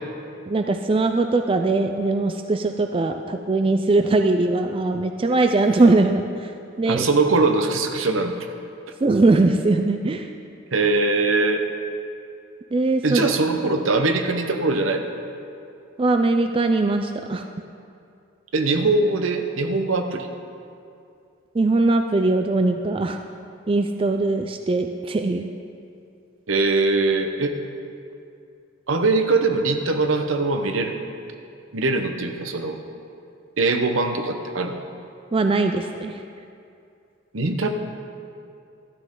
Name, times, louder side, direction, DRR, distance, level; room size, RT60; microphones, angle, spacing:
voice 1, 0.5-6.5 6.8-7.0 9.0-10.3 12.7-13.3 16.0-17.4 21.5-23.2 23.7-25.5 35.3-36.2, right 2 dB, 25° right, 6 dB, 0.3 m, -21 dB
voice 2, 6.9-8.4 10.7-11.6 13.0-15.1 18.5-20.3 26.5-27.6 28.9-31.0 31.7-32.8 33.6-34.7 37.3-37.7, right 3 dB, 75° right, 6 dB, 0.9 m, -21 dB
13.0 x 11.5 x 3.8 m, 2.5 s
head